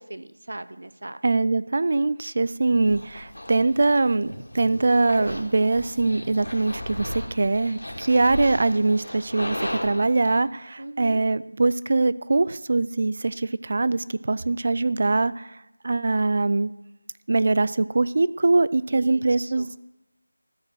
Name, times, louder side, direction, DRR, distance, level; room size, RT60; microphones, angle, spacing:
voice 1, 0.0-1.2 10.8-11.2 18.9-19.7, right 1 dB, 65° right, 13 dB, 0.7 m, -39 dB
voice 2, 1.2-15.6 15.8-16.7 17.3-19.8, right 3 dB, 45° right, 17 dB, 0.4 m, -22 dB
sound 1, 2.8-10.4, left 1 dB, 80° left, 2.5 m, -36 dB
13.5 x 5.1 x 7.8 m, 0.95 s
figure-of-eight pair, 170°, 0 cm